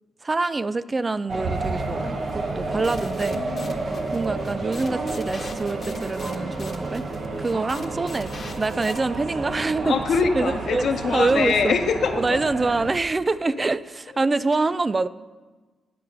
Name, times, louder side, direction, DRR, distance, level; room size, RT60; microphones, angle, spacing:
voice 1, 0.2-3.4 4.1-7.1 7.4-8.3 8.6-9.9 10.4-10.8 11.1-11.7 12.2-15.1, right 3 dB, 30° right, 15 dB, 0.3 m, -25 dB
sound 1, 1.3-12.9, right 3 dB, 55° right, 1.3 m, -30 dB
voice 2, 2.6-4.1 7.5-7.7 9.8-12.4 13.6-13.7, left 5 dB, 70° left, 7 dB, 0.9 m, -25 dB
sound 2, 2.8-9.0, left 4 dB, 45° left, 1.1 m, -43 dB
9.2 x 6.8 x 5.3 m, 1.3 s
cardioid pair, 65°, 0 cm